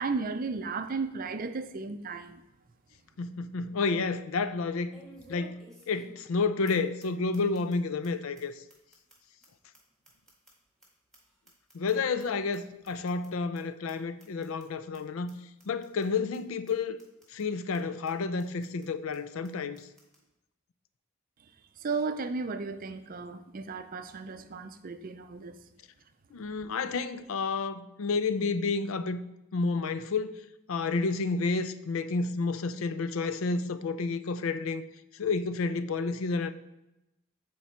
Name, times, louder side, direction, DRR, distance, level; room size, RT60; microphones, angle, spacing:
voice 1, 0.0-2.4 21.8-25.6, right 4 dB, 40° right, 0.5 m, -34 dB
sound 1, 2.5-2.6 3.1-3.2 4.9-6.4 6.7-6.8 7.0-7.1 7.3-7.7 8.0-8.1 8.4-8.5 8.7-10.9 11.1-12.2 12.5-12.6 12.8-13.3 13.5-13.6 13.9-14.0 14.2-14.6 14.9-15.0 15.3-15.4 15.6-16.1 16.3-16.4 16.7-16.8 17.0-17.4 17.7-17.8 18.1-18.2 18.4-18.9 19.1-19.2 19.4-19.5 19.7-20.2, right 1 dB, ahead, 1.8 m, -54 dB
voice 2, 3.2-4.9 5.3-8.5 11.7-15.4 15.7-17.0 17.3-19.9 26.3-29.2 29.5-30.3 30.7-34.8 35.1-36.5, left 4 dB, 75° left, 0.4 m, -30 dB
8.3 x 4.6 x 4.3 m
head